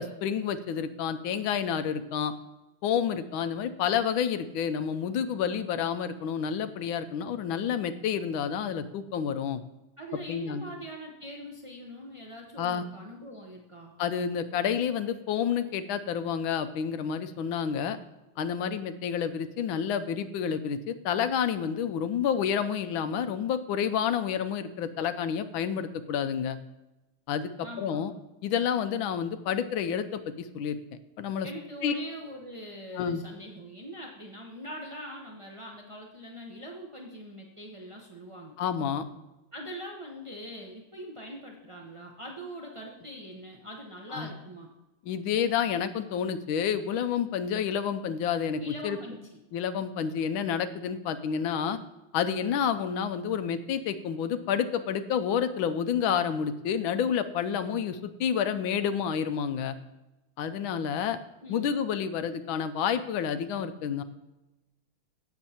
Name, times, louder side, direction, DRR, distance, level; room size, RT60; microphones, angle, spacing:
voice 1, 0.0-2.3 2.8-9.6 10.3-10.6 12.6-12.8 14.0-18.0 18.4-26.6 27.3-28.1 28.4-30.8 31.2-31.5 31.8-31.9 32.9-33.2 38.6-39.0 44.1-44.3 45.0-49.0 49.5-51.8 52.1-59.8 60.4-61.2 61.5-64.0, left 8 dB, 75° left, 11 dB, 1.3 m, -29 dB
voice 2, 10.0-13.9 27.6-28.0 31.4-38.5 39.5-44.7 48.6-49.4 61.4-61.7, equal, 50° right, -1 dB, 0.3 m, -42 dB
16.0 x 7.0 x 2.9 m, 1.0 s
omnidirectional pair, 2.3 m